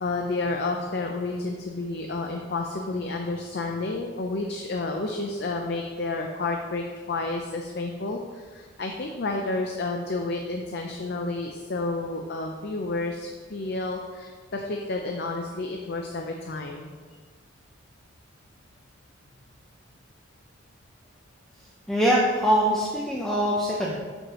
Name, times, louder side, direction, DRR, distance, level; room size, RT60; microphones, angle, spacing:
voice 1, 0.0-16.9, left 2 dB, 50° left, 2 dB, 0.5 m, -30 dB
voice 2, 21.9-24.0, equal, ahead, -5 dB, 0.6 m, -23 dB
7.6 x 6.4 x 3.0 m, 1.5 s
head